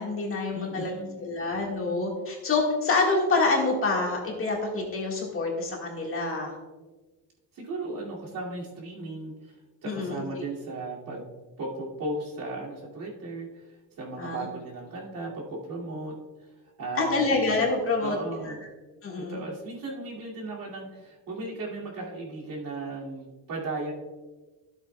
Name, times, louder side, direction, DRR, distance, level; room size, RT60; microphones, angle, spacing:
voice 1, 0.0-0.9 1.2-6.5 9.8-10.4 14.2-14.4 17.0-18.2 18.4-18.5 19.0-19.4, left 3 dB, 30° left, -1 dB, 1.7 m, -27 dB
voice 2, 0.5-1.2 7.5-9.6 9.8-11.3 11.6-16.2 16.6-17.4 18.0-18.6 19.2-23.9, right 2 dB, 55° right, -3 dB, 2.5 m, -36 dB
13.0 x 8.0 x 2.3 m, 1.2 s
cardioid pair, 145°, 41 cm